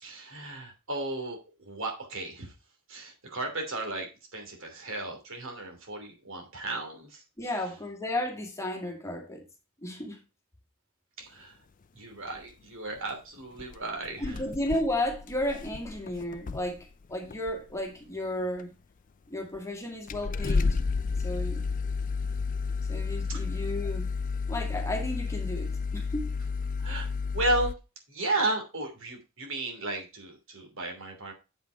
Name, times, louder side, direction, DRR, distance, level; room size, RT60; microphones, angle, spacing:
voice 1, 0.0-2.5 2.9-7.2 11.2-11.6 11.9-14.4 23.3-23.4 26.8-27.1 27.3-27.7 28.1-31.3, right 2 dB, 65° right, 2.8 m, -34 dB
voice 2, 7.4-9.4 9.8-10.2 14.2-18.8 19.3-20.8 21.2-21.6 22.9-24.1 24.5-26.3, left 1 dB, 15° left, 1.9 m, -33 dB
sound 1, 12.9-13.1 13.6-13.7 14.1-16.8 17.3-17.7 18.6-18.7 19.6-19.7 20.1-27.7, left 4 dB, 40° left, 0.4 m, -31 dB
7.8 x 5.7 x 4.7 m
head